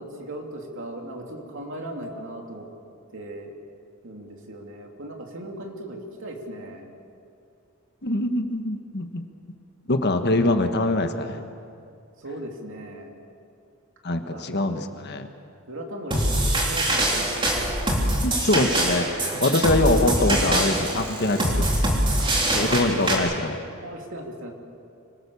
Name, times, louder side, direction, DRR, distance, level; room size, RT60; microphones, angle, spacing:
voice 1, 0.0-2.7 3.1-3.5 4.0-6.9 12.2-13.2 14.1-14.6 15.7-17.5 22.2-22.4 22.9-23.1 23.8-24.5, right 1 dB, 60° right, 1 dB, 3.0 m, -37 dB
voice 2, 8.0-9.2 9.9-11.4 14.0-15.3 18.2-22.0 22.5-23.6, left 2 dB, 50° left, 6 dB, 1.4 m, -24 dB
sound 1, 16.1-23.2, right 1 dB, 25° right, 3.6 m, -23 dB
25.5 x 19.0 x 7.1 m, 2.4 s
head